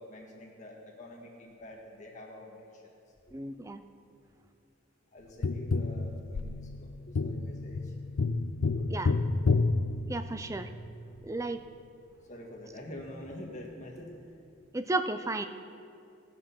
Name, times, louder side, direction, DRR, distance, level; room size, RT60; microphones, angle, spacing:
voice 1, 0.0-2.9 5.1-7.9 8.7-9.2 11.1-11.2 12.3-14.2, left 1 dB, 40° left, -1 dB, 1.7 m, -46 dB
voice 2, 3.3-3.8 8.9-9.1 10.1-10.7 11.2-11.6 14.7-15.5, right 2 dB, 15° right, 9 dB, 0.4 m, -33 dB
Tap, 5.4-10.7 13.3-13.4, left 3 dB, 85° left, 0.5 m, -30 dB
17.0 x 6.2 x 5.5 m, 2.5 s
head